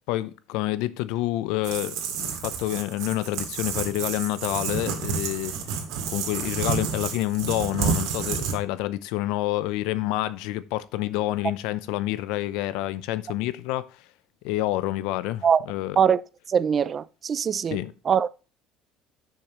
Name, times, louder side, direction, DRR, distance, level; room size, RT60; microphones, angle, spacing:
voice 1, 0.0-5.5 6.1-14.0 14.4-16.0 17.7-17.9, left 15 dB, 75° left, 0.6 m, -28 dB
sound 1, 1.6-8.6, right 7 dB, 65° right, 2.2 m, -30 dB
voice 2, 16.5-17.8 18.1-18.3, right 7 dB, 25° right, 0.3 m, -22 dB
10.0 x 6.4 x 3.0 m
cardioid pair, 165°, 0 cm